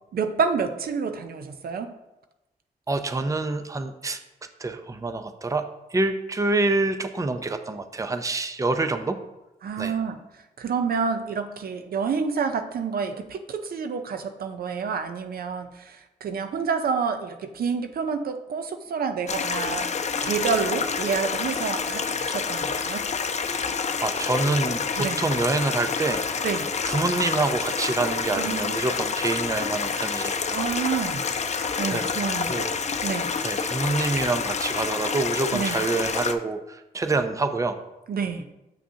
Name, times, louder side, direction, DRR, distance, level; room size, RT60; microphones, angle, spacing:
voice 1, 0.1-1.9 9.6-10.2 10.6-19.9 20.2-23.1 25.0-25.2 26.4-26.7 28.4-28.9 30.5-31.2 31.8-32.6 33.0-33.3 35.5-35.8 38.1-38.5, right 5 dB, 70° right, 8 dB, 0.6 m, -28 dB
voice 2, 2.9-4.2 4.6-5.6 5.9-9.2 9.8-9.9 24.0-26.2 26.9-30.4 31.9-32.2 32.5-32.7 33.4-37.8, right 3 dB, 20° right, 8 dB, 0.5 m, -26 dB
Stream, 19.3-36.4, left 5 dB, 45° left, 0.5 m, -28 dB
7.1 x 5.9 x 2.8 m, 0.95 s
cardioid pair, 60°, 16 cm